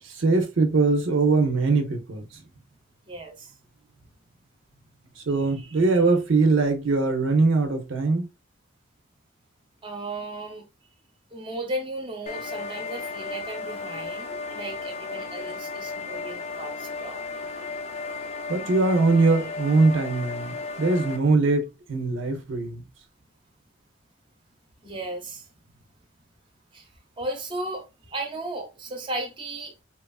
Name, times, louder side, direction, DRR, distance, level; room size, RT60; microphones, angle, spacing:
voice 1, 0.0-2.4 5.2-8.3 18.5-22.9, right 3 dB, 85° right, 0.7 m, -22 dB
voice 2, 3.1-3.5 9.8-10.6 11.3-17.2 24.8-25.5 26.7-26.9 27.2-29.7, right 2 dB, 25° right, 0.7 m, -35 dB
sound 1, 12.3-21.2, left 4 dB, 35° left, 0.5 m, -34 dB
2.9 x 2.4 x 2.3 m
head